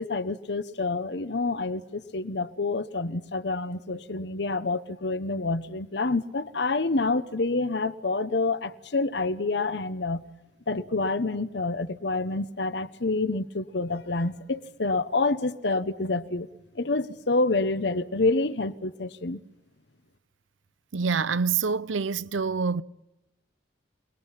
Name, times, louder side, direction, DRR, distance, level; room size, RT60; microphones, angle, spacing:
voice 1, 0.0-10.2 10.7-16.5 16.7-19.4, left 3 dB, 60° left, 1.0 m, -28 dB
voice 2, 20.9-22.8, right 5 dB, 85° right, 0.7 m, -26 dB
28.0 x 20.0 x 5.8 m
head